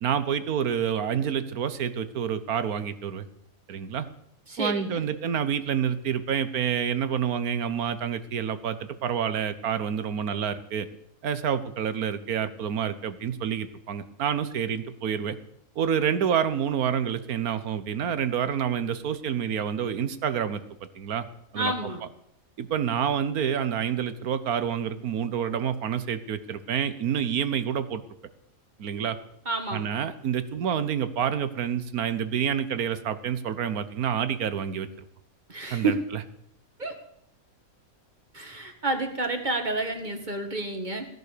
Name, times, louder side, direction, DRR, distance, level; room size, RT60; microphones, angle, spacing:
voice 1, 0.0-3.3 3.7-4.1 4.6-10.9 11.2-15.4 15.8-20.6 21.0-21.2 21.5-21.7 22.6-28.0 28.8-29.2 29.7-34.9 35.7-35.9, right 8 dB, 90° right, 12 dB, 1.5 m, -28 dB
voice 2, 4.5-5.0 21.5-22.0 28.9-29.0 29.5-29.9 35.5-36.0 36.8-37.0 38.3-41.1, right 2 dB, 30° right, 5 dB, 1.9 m, -29 dB
16.5 x 11.0 x 6.8 m, 0.73 s
omnidirectional pair, 1.5 m